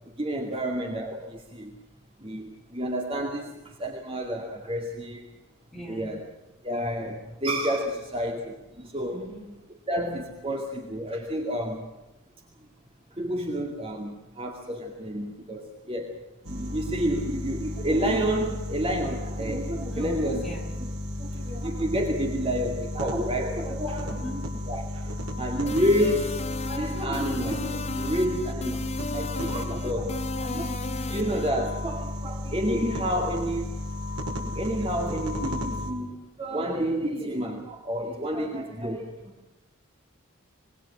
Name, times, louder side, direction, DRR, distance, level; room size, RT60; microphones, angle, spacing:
voice 1, 0.2-1.8 2.2-5.3 5.9-6.2 6.6-9.3 9.9-11.9 13.1-20.5 20.8-20.9 21.2-24.2 24.7-28.9 29.1-33.7 34.6-39.3, equal, 25° right, 2 dB, 2.3 m, -30 dB
voice 2, 5.7-6.2 9.1-9.5 19.9-20.7 24.1-24.6, equal, ahead, -2 dB, 6.1 m, -40 dB
sound 1, 16.4-35.9, left 1 dB, 80° right, 5.3 m, -34 dB
sound 2, 25.7-31.5, left 2 dB, 30° left, 0.7 m, -35 dB
26.0 x 21.5 x 6.3 m, 1.0 s
head